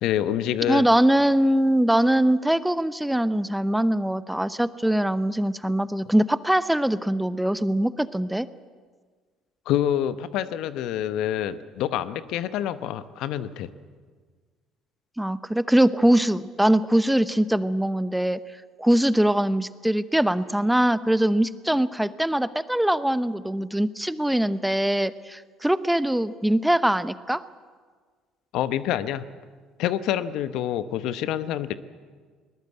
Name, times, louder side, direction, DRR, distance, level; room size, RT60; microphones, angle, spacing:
voice 1, 0.0-0.8 9.7-13.7 28.5-29.3 29.8-31.7, left 11 dB, 65° left, 13 dB, 0.9 m, -27 dB
voice 2, 0.7-8.5 15.2-18.4 18.8-27.4, right 1 dB, 5° right, 15 dB, 0.9 m, -22 dB
21.5 x 20.0 x 8.1 m, 1.6 s
hypercardioid pair, 60°, 0 cm